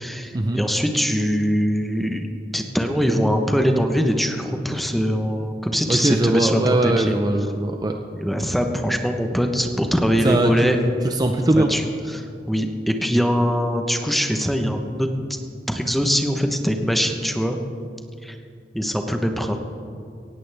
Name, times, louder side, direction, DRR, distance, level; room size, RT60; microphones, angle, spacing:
voice 1, 0.0-2.3 2.5-7.1 8.1-10.8 11.5-15.1 15.7-17.6 18.2-18.4 18.7-19.6, equal, ahead, 5 dB, 1.0 m, -22 dB
voice 2, 5.9-8.0 10.2-10.8 11.0-11.7, right 1 dB, 25° right, 4 dB, 0.6 m, -20 dB
17.5 x 16.5 x 3.5 m, 2.4 s
head